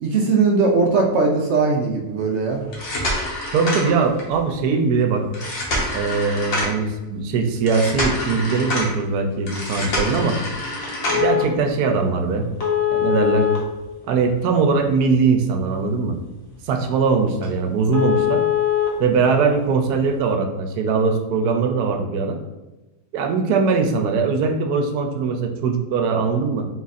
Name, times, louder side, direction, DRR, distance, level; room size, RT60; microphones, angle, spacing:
voice 1, 0.0-2.6, right 4 dB, 65° right, 2 dB, 0.7 m, -19 dB
sound 1, 2.6-4.4 5.3-6.9 7.7-8.9 9.5-11.4 12.6-14.5 14.9-15.0 15.5-15.6 16.1-16.2 16.5-16.6 17.0-17.1 17.4-17.5 17.9-18.9 20.0-20.1, left 5 dB, 60° left, 1.4 m, -24 dB
voice 2, 3.5-5.2 5.9-10.4 11.1-12.5 12.9-13.5 14.1-16.2 16.6-18.4 19.0-22.4 23.1-26.7, right 4 dB, 85° right, 4 dB, 1.1 m, -21 dB
4.1 x 2.4 x 4.0 m, 1.1 s
omnidirectional pair, 1.6 m